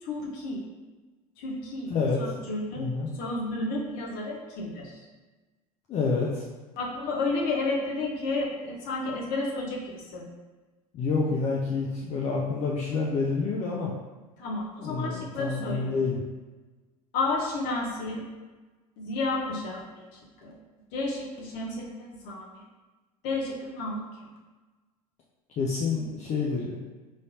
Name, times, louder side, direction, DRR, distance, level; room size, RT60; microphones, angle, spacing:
voice 1, 0.0-0.6 1.4-1.9 2.2-2.9 3.1-5.0 6.7-10.3 14.4-16.0 17.1-18.2 19.0-20.5 20.9-22.6 23.2-24.1, left 2 dB, 55° left, -3 dB, 1.1 m, -32 dB
voice 2, 1.9-2.2 2.7-3.1 5.9-6.4 10.9-13.9 14.8-16.2 25.6-26.8, left 4 dB, 40° left, -3 dB, 0.6 m, -28 dB
4.1 x 3.2 x 2.8 m, 1.3 s
figure-of-eight pair, 70°, 19 cm